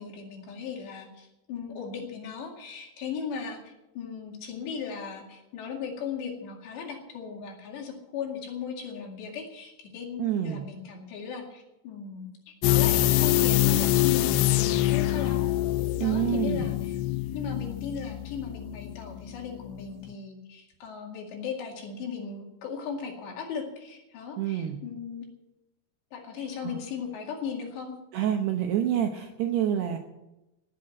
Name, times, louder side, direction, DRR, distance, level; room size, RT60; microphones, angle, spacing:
voice 1, 0.0-15.5 16.0-17.0 17.3-25.3 26.1-27.9, left 6 dB, 60° left, 1 dB, 4.1 m, -37 dB
voice 2, 10.2-10.6 16.0-16.7 24.4-24.8 26.6-26.8 28.1-30.0, right 10 dB, 75° right, 3 dB, 2.5 m, -27 dB
sound 1, 12.6-19.4 19.7-19.8, left 15 dB, 80° left, 3.2 m, -25 dB
18.5 x 8.3 x 7.7 m, 0.96 s
omnidirectional pair, 5.9 m